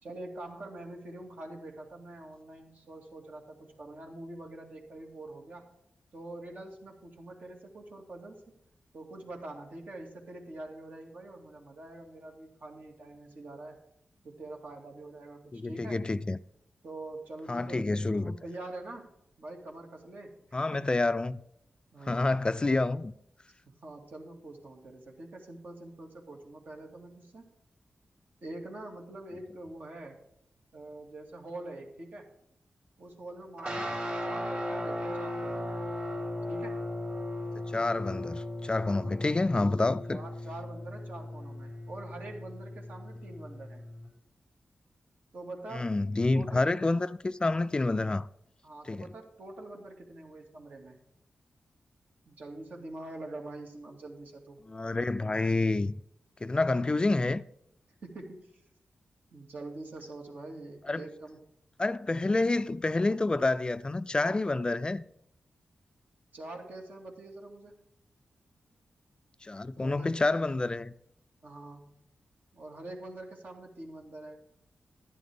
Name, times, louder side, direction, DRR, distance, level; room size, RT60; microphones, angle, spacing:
voice 1, 0.0-5.7 6.1-8.4 8.9-13.8 14.2-16.1 16.8-20.4 20.7-20.9 21.9-22.3 23.8-27.5 28.4-30.2 30.7-32.3 33.0-35.8 36.5-36.8 38.8-39.2 40.1-43.8 45.3-45.9 46.3-46.6 48.6-51.0 52.3-54.6 58.0-58.5 59.3-61.4 66.3-67.8 69.8-70.2 71.4-71.9 72.5-74.4, right 2 dB, 65° right, 2.2 m, -45 dB
voice 2, 15.5-16.4 17.5-18.3 20.5-21.4 22.1-23.1 37.7-40.2 45.7-48.3 48.9-49.1 54.7-56.0 56.4-57.4 60.9-61.1 61.8-65.0 69.4-70.9, left 2 dB, 30° left, 0.3 m, -28 dB
sound 1, 33.6-44.1, left 1 dB, 50° right, 3.4 m, -37 dB
11.0 x 10.0 x 3.6 m
cardioid pair, 70°, 3 cm